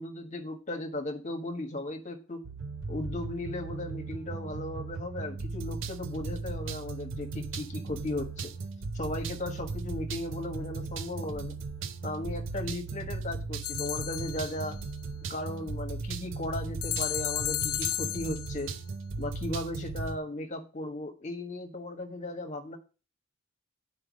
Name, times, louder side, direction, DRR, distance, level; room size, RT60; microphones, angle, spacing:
voice 1, 0.0-2.4 2.9-8.5 8.9-11.5 12.0-14.8 15.3-18.7 19.2-22.8, left 1 dB, 35° left, 4 dB, 1.4 m, -36 dB
sound 1, 2.4-20.2, right 4 dB, 60° right, 0.6 m, -37 dB
sound 2, 13.6-14.7 16.8-18.6, left 15 dB, 90° left, 0.5 m, -33 dB
8.9 x 4.9 x 6.2 m, 0.34 s
head